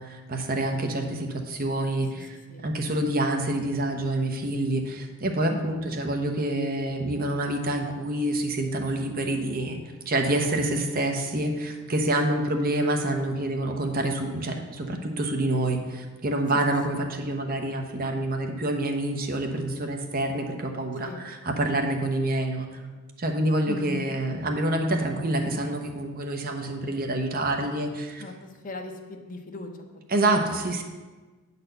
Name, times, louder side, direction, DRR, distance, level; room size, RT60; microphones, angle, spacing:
voice 1, 0.0-2.3 2.6-9.8 10.1-22.7 23.2-28.2 30.1-30.8, right 1 dB, 45° right, 4 dB, 0.9 m, -27 dB
voice 2, 5.5-5.9 12.3-12.4 16.9-17.0 21.0-21.3 23.7-24.1 28.2-29.7 30.4-30.5, left 2 dB, 40° left, 4 dB, 0.8 m, -38 dB
8.8 x 4.2 x 6.7 m, 1.3 s
head